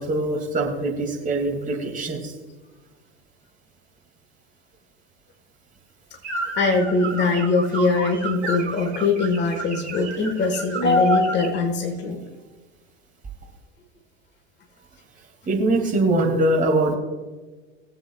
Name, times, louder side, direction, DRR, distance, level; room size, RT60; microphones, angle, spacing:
voice 1, 0.0-2.3 15.5-17.0, right 2 dB, 25° right, 0 dB, 2.8 m, -22 dB
sound 1, 6.2-11.6, right 3 dB, 85° right, 2.2 m, -33 dB
voice 2, 6.6-12.2, left 3 dB, 30° left, 4 dB, 1.7 m, -21 dB
21.5 x 7.8 x 2.5 m, 1.3 s
figure-of-eight pair, 75°, 33 cm